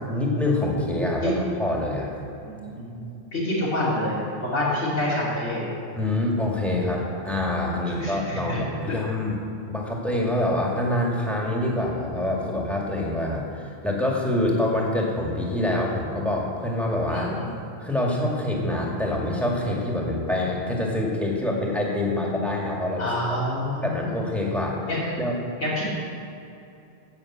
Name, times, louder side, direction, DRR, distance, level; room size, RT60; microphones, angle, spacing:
voice 1, 0.1-2.1 5.9-9.4 9.7-17.3 17.8-23.4 23.8-24.8 25.2-25.3, left 1 dB, ahead, -3 dB, 2.1 m, -26 dB
voice 2, 2.4-3.0 3.3-5.7 7.9-8.6 8.8-9.0 17.1-17.5 23.0-24.0 24.9-25.0 25.6-25.8, left 1 dB, 80° left, -10 dB, 3.3 m, -27 dB
11.0 x 7.4 x 8.7 m, 2.7 s
omnidirectional pair, 1.2 m